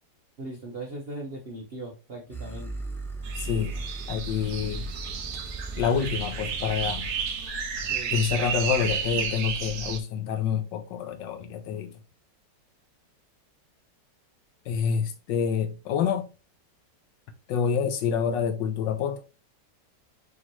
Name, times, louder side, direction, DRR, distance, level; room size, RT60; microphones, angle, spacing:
voice 1, 0.4-2.7 7.9-8.2, right 2 dB, 45° right, 0.8 m, -39 dB
sound 1, 2.3-7.5, right 3 dB, 5° left, 0.3 m, -38 dB
sound 2, 3.2-10.0, right 6 dB, 60° right, 1.3 m, -32 dB
voice 2, 3.3-3.8 4.1-4.9 5.8-7.1 8.1-11.9 14.7-16.3 17.5-19.2, left 7 dB, 85° left, 1.5 m, -27 dB
5.2 x 3.1 x 2.9 m
omnidirectional pair, 1.9 m